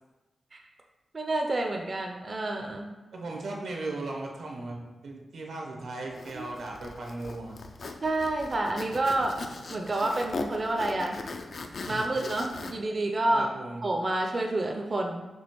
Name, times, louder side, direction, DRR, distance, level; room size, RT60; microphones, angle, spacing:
voice 1, 1.1-2.9 6.3-6.4 8.0-9.4 9.7-11.2 11.9-13.5 13.8-15.3, right 2 dB, 40° right, 2 dB, 0.4 m, -29 dB
voice 2, 3.1-7.6 13.3-13.8, right 2 dB, 85° right, 0 dB, 0.8 m, -37 dB
Zipper (clothing), 6.1-12.7, left 3 dB, 65° left, 0.4 m, -39 dB
6.1 x 2.8 x 2.9 m, 1.1 s
cardioid pair, 70°, 0 cm